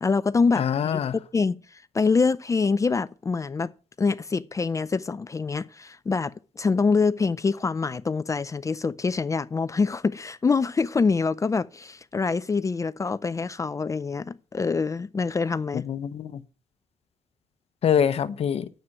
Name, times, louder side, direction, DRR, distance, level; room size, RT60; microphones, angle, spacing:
voice 1, 0.0-0.6 0.9-1.0 1.3-3.7 4.0-15.8, left 4 dB, 25° left, 0.5 m, -25 dB
voice 2, 0.6-1.2 15.7-16.4 17.8-18.7, left 8 dB, 60° left, 0.9 m, -25 dB
9.4 x 7.6 x 6.0 m
cardioid pair, 95°, 12 cm